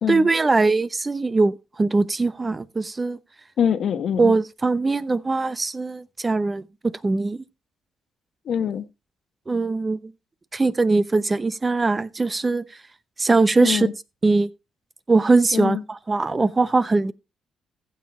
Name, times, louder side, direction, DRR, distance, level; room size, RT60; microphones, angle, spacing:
voice 1, 0.1-3.2 4.2-6.6 7.0-7.4 9.5-10.1 10.5-12.6 13.2-13.9 14.2-14.5 15.1-17.1, right 3 dB, 25° right, 0.9 m, -21 dB
voice 2, 3.6-4.3 8.5-8.8 13.6-13.9 15.5-15.8, left 8 dB, 65° left, 1.2 m, -24 dB
15.0 x 7.3 x 4.3 m
cardioid pair, 90°, 0 cm